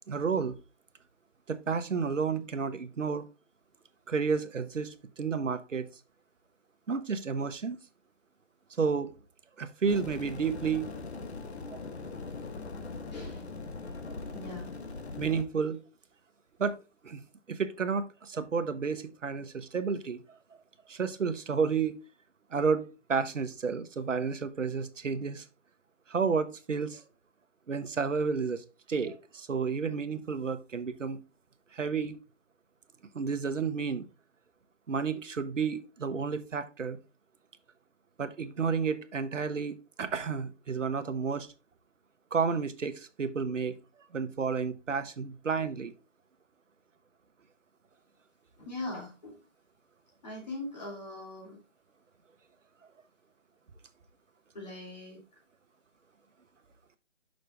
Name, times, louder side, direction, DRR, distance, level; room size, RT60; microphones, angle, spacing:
voice 1, 0.1-0.6 1.5-3.3 4.1-5.9 6.9-7.8 8.8-9.1 9.6-10.9 11.7-11.8 15.2-15.8 16.6-16.8 17.0-17.2 17.5-20.2 20.9-21.9 22.5-25.4 26.1-27.0 27.7-31.2 31.7-32.2 33.1-34.1 34.9-37.0 38.2-41.5 42.3-43.7 44.1-45.9, right 5 dB, 85° right, 1.0 m, -31 dB
sound 1, 9.9-15.4, left 3 dB, 60° left, 1.2 m, -40 dB
voice 2, 13.1-13.5 14.3-14.7 48.6-49.4 50.2-51.6 54.5-55.2, left 2 dB, 35° left, 2.6 m, -41 dB
6.4 x 5.3 x 3.3 m
hypercardioid pair, 170°, 37 cm